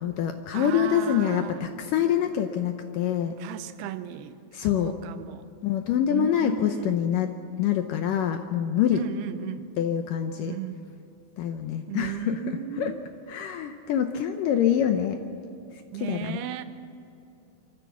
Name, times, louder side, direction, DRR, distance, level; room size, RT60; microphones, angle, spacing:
voice 1, 0.0-3.3 4.5-4.9 5.6-7.3 7.6-9.0 9.8-10.5 11.4-12.4 12.8-12.9 13.3-15.2 16.0-16.4, left 10 dB, 75° left, 6 dB, 2.1 m, -25 dB
voice 2, 0.5-1.6 3.4-4.4 4.7-5.4 6.1-7.0 8.9-9.7 10.5-10.9 11.9-13.0 15.9-16.6, right 11 dB, 85° right, 11 dB, 2.8 m, -35 dB
25.5 x 14.0 x 7.2 m, 2.7 s
omnidirectional pair, 4.6 m